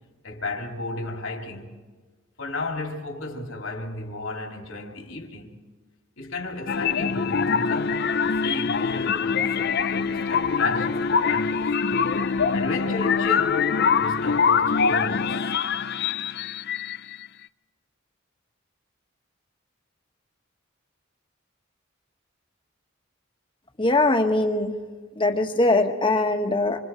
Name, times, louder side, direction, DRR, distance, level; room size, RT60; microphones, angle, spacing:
voice 1, 0.2-1.8 2.4-5.6 6.2-11.6 12.3-15.4, left 2 dB, 75° left, 2.9 m, -33 dB
sound 1, 6.7-17.3, left 5 dB, 50° left, 0.6 m, -24 dB
voice 2, 23.8-24.7 25.2-26.8, left 2 dB, 25° left, 1.4 m, -21 dB
27.0 x 26.0 x 4.5 m
head